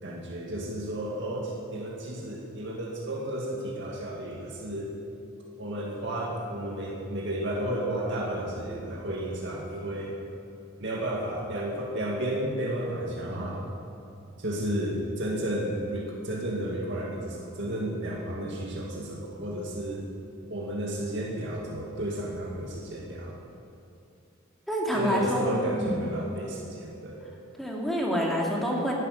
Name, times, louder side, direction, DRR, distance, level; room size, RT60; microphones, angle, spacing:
voice 1, 0.0-4.9 5.6-10.1 10.8-13.7 14.4-20.0 20.5-23.4 24.9-27.2, right 1 dB, 60° right, -3 dB, 2.1 m, -32 dB
voice 2, 24.7-26.1 27.6-28.9, equal, ahead, -3 dB, 2.7 m, -28 dB
12.5 x 11.5 x 9.3 m, 2.7 s
head